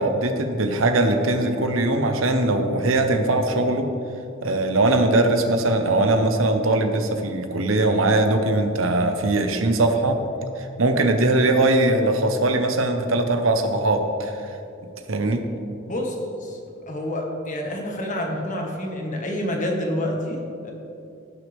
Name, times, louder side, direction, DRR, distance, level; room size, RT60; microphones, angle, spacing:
voice 1, 0.0-3.9 4.4-10.2 10.6-14.4 15.1-15.4, right 2 dB, 85° right, 6 dB, 0.9 m, -21 dB
voice 2, 16.9-20.7, left 1 dB, 40° left, 1 dB, 1.5 m, -28 dB
16.5 x 6.4 x 3.5 m, 2.6 s
head